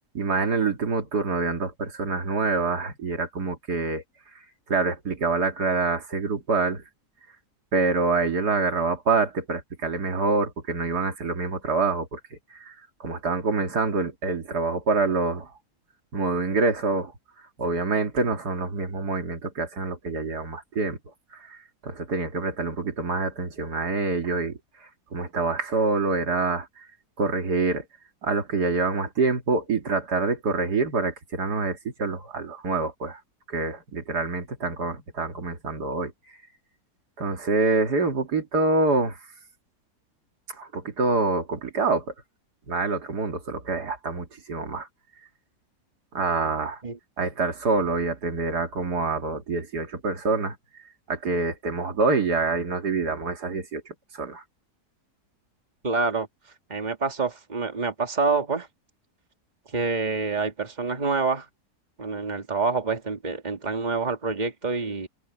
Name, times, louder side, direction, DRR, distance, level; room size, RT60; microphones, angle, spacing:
voice 1, 0.1-4.0 4.7-6.8 7.7-15.5 16.1-17.1 17.6-21.0 21.3-26.9 27.2-27.9 28.2-33.2 33.5-36.1 37.2-39.2 40.5-42.1 42.7-44.9 46.1-46.8 47.2-50.6 51.1-54.4, right 3 dB, 85° right, 2.8 m, -26 dB
voice 2, 55.8-56.3 56.7-58.7 59.7-61.5 62.0-65.1, right 4 dB, 25° right, 2.2 m, -27 dB
omnidirectional pair, 1.7 m